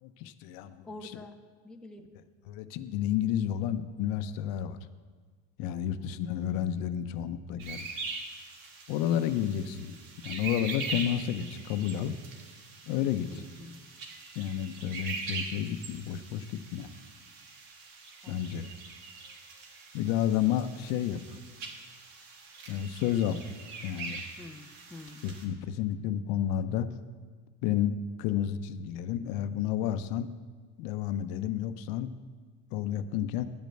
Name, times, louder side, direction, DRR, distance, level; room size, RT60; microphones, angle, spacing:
voice 1, 0.0-0.9 2.5-4.8 5.6-7.9 8.9-9.9 10.2-12.1 12.9-13.4 14.4-16.9 18.3-18.7 19.9-21.4 22.7-23.4 23.8-24.2 25.2-26.9 27.6-30.3 30.8-32.1 32.7-33.5, left 10 dB, 70° left, 11 dB, 0.7 m, -31 dB
voice 2, 0.8-1.4 1.6-2.1 13.2-13.8 18.2-18.8 24.4-25.3, left 2 dB, ahead, 4 dB, 0.4 m, -47 dB
sound 1, 7.6-25.4, right 4 dB, 65° right, 1.7 m, -42 dB
10.0 x 5.2 x 7.7 m, 1.5 s
cardioid pair, 130°, 36 cm